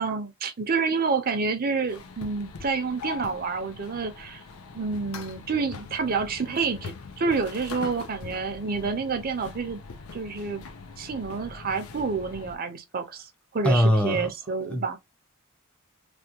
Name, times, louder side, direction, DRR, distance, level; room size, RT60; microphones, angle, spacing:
voice 1, 0.0-4.4 4.7-9.8 10.1-10.6 11.0-13.3 13.5-15.0, right 4 dB, 45° right, 0.6 m, -28 dB
sound 1, 1.9-12.6, left 5 dB, 80° left, 0.6 m, -42 dB
voice 2, 13.6-14.3 14.6-15.0, equal, 5° left, 0.5 m, -22 dB
3.4 x 2.3 x 2.8 m
head